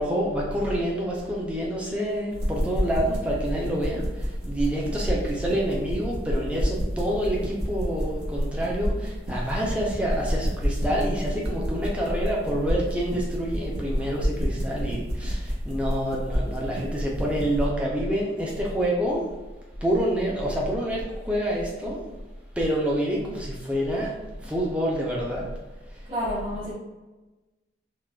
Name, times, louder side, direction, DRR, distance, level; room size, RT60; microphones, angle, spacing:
voice 1, 0.0-4.0 4.5-19.2 19.8-22.0 22.6-24.1 24.4-25.5, equal, 5° right, -4 dB, 0.5 m, -27 dB
sound 1, 2.3-17.7, equal, 65° right, 0.7 m, -29 dB
voice 2, 26.1-26.7, equal, 40° right, -14 dB, 1.2 m, -29 dB
3.8 x 2.3 x 2.3 m, 1.2 s
head